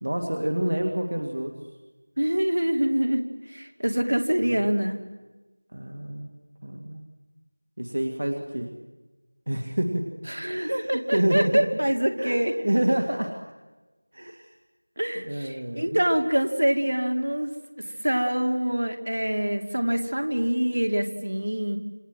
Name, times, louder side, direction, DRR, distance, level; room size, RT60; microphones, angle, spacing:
voice 1, 0.0-1.6 4.5-4.7 5.7-6.3 6.6-7.0 7.8-8.7 9.5-10.1 10.5-11.7 12.2-13.3 14.1-14.5 15.2-16.0, right 1 dB, 40° right, 4 dB, 2.1 m, -27 dB
voice 2, 2.2-3.2 3.5-5.0 10.3-12.5 15.0-17.5 17.8-21.8, right 1 dB, 60° right, 4 dB, 2.8 m, -25 dB
27.5 x 25.0 x 7.7 m, 1.2 s
figure-of-eight pair, 180°, 0 cm